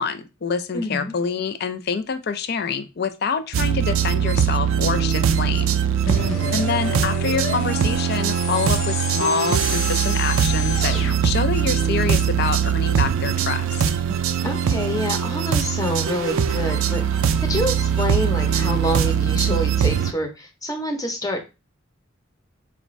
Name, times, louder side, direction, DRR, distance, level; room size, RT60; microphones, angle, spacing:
voice 1, 0.0-5.7 6.5-13.8, left 5 dB, 50° left, 10 dB, 0.4 m, -26 dB
voice 2, 0.7-1.1 6.0-6.6 14.4-21.4, left 1 dB, 15° left, 3 dB, 0.7 m, -27 dB
Cool Drum And Synth Loop, 3.5-20.1, right 8 dB, 80° right, 0.4 m, -21 dB
sound 1, 6.1-11.2, left 4 dB, 75° left, 0.8 m, -31 dB
sound 2, 13.2-15.3 15.8-19.1, right 2 dB, 25° right, 0.9 m, -42 dB
4.3 x 2.5 x 3.1 m, 0.27 s
head